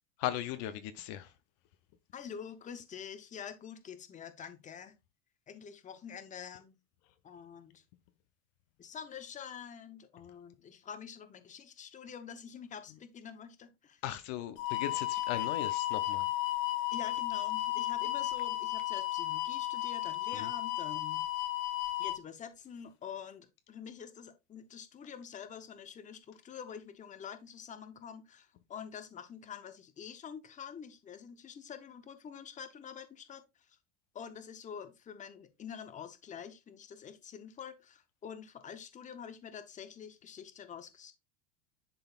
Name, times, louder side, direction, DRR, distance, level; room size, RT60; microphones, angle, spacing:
voice 1, 0.2-1.3 14.0-16.3 20.3-20.5, left 12 dB, 55° left, 0.6 m, -37 dB
voice 2, 2.1-4.9 5.5-6.8 7.2-7.8 8.8-14.0 16.9-21.2 22.0-33.8 34.1-41.1, left 7 dB, 20° left, 0.8 m, -47 dB
sound 1, 14.6-22.2, left 16 dB, 75° left, 1.2 m, -34 dB
10.5 x 3.9 x 2.4 m
supercardioid pair, 140°, 38 cm